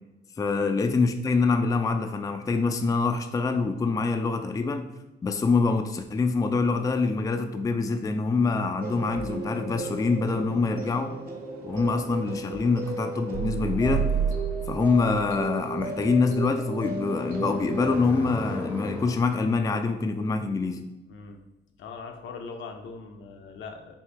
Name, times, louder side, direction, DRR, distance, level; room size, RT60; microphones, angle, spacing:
voice 1, 0.4-4.9 5.2-11.2 11.6-14.2 14.7-20.8, left 4 dB, 15° left, 0.3 m, -25 dB
sound 1, 8.8-18.0, right 4 dB, 45° right, 1.2 m, -32 dB
sound 2, 11.7-19.2, left 1 dB, 5° right, 0.7 m, -40 dB
voice 2, 21.1-21.4 21.8-23.9, left 4 dB, 75° left, 0.7 m, -41 dB
4.4 x 2.8 x 3.3 m
cardioid pair, 90°, 20 cm